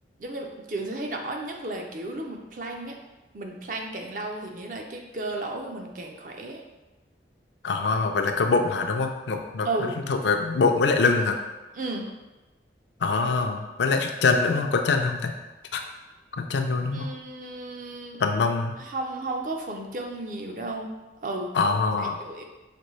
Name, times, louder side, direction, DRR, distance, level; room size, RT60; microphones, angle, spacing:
voice 1, 0.2-3.0 3.3-6.6 9.6-10.0 11.7-12.1 16.9-18.2 18.8-20.9 21.2-21.5 22.0-22.4, right 2 dB, 45° right, 2 dB, 0.5 m, -33 dB
voice 2, 7.6-11.4 13.0-15.3 15.7-15.8 16.4-17.1 18.2-18.7 21.5-22.2, left 4 dB, 80° left, 5 dB, 0.4 m, -24 dB
5.1 x 2.6 x 3.1 m, 1.1 s
head